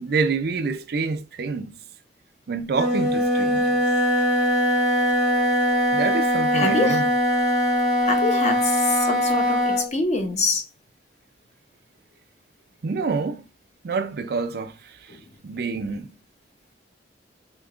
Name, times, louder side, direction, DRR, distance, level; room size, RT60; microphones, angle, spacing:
voice 1, 0.0-1.8 2.5-3.8 5.9-7.1 12.8-13.4 13.8-14.7 15.4-16.1, right 4 dB, 60° right, 0.4 m, -27 dB
Wind instrument woodwind instrument, 2.7-9.9, equal, 85° left, 2.1 m, -21 dB
voice 2, 6.5-7.0 8.0-10.6 15.1-15.2, left 3 dB, 40° left, 0.7 m, -25 dB
5.0 x 2.8 x 2.4 m
head